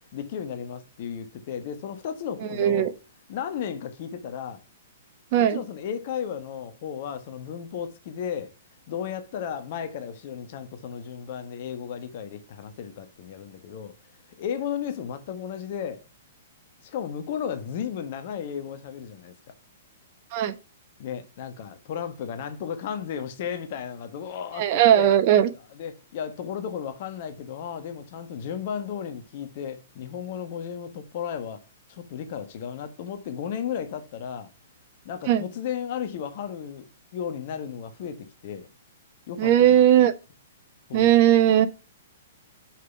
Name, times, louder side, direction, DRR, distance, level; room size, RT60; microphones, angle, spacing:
voice 1, 0.1-2.9 3.3-4.6 5.4-8.5 8.9-13.9 14.4-16.0 16.8-19.3 21.0-25.1 25.8-31.6 31.9-34.5 35.0-36.8 37.1-38.7 39.3-39.8 40.9-41.1, left 8 dB, 50° left, 1.2 m, -34 dB
voice 2, 2.5-2.9 5.3-5.6 20.3-20.6 24.6-25.5 35.3-35.4 39.4-40.1 40.9-41.7, right 11 dB, 45° right, 1.1 m, -18 dB
5.9 x 5.4 x 5.4 m
figure-of-eight pair, 120°, 0 cm